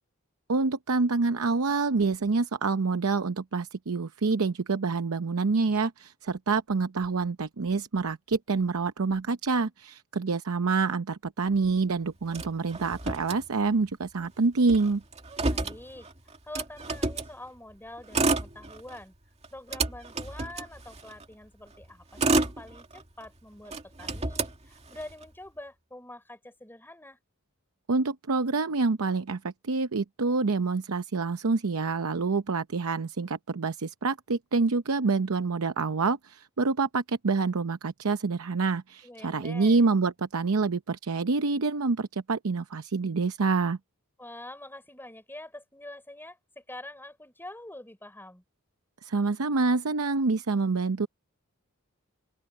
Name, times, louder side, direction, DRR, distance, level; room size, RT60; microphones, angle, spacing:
voice 1, 0.5-15.0 27.9-43.8 49.0-51.1, right 4 dB, 75° right, 0.7 m, -27 dB
Motor vehicle (road), 12.3-13.9 14.2-14.3 14.6-17.3 18.0-19.0 19.4-21.2 21.8-23.3 23.7-25.2, right 3 dB, 30° right, 2.3 m, -30 dB
voice 2, 15.5-16.1 16.4-19.1 19.5-27.2 39.0-39.8 44.2-48.4, left 1 dB, 10° left, 5.4 m, -45 dB
open air
head